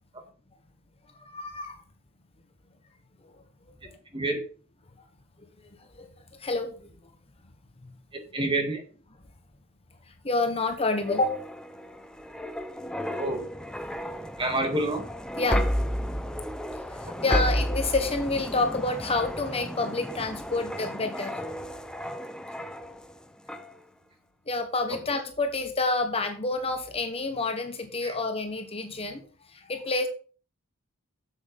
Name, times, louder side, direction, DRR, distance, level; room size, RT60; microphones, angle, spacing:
voice 1, 1.2-1.8 3.8-3.9 5.8-6.9 7.8-7.9 10.2-11.4 15.4-15.7 17.0-21.3 24.5-29.2 29.5-30.1, left 3 dB, 30° left, 6 dB, 1.2 m, -28 dB
voice 2, 8.1-8.8 13.2-13.4 14.4-15.0 17.3-17.4 24.9-25.0 28.0-28.1, right 2 dB, 25° right, 5 dB, 1.9 m, -28 dB
sound 1, 10.8-23.1 23.5-23.7, equal, 5° left, 0.7 m, -32 dB
8.0 x 7.5 x 5.3 m, 0.39 s
head